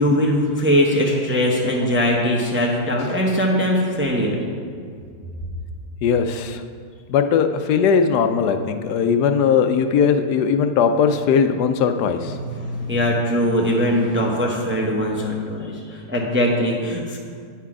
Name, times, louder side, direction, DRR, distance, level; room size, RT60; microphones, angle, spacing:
voice 1, 0.0-4.4 12.3-17.2, equal, 10° right, -1 dB, 0.6 m, -21 dB
voice 2, 6.0-6.6 7.1-12.3, left 6 dB, 80° left, 8 dB, 1.1 m, -19 dB
9.2 x 5.8 x 4.8 m, 2.2 s
omnidirectional pair, 1.7 m